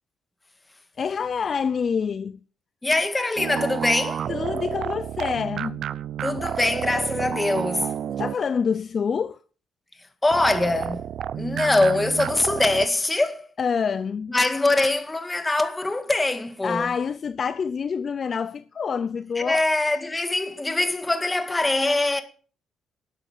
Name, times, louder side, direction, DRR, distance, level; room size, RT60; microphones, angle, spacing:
voice 1, 1.0-2.4 4.3-5.9 8.2-9.4 13.6-14.4 16.6-19.6, left 6 dB, 45° left, 0.6 m, -27 dB
voice 2, 2.8-4.2 6.2-8.0 10.2-13.4 14.3-16.9 19.4-22.2, left 2 dB, 15° left, 1.9 m, -23 dB
sound 1, 3.4-8.7 10.3-12.9, right 9 dB, 65° right, 0.5 m, -30 dB
12.5 x 8.3 x 6.8 m
cardioid pair, 90°, 0 cm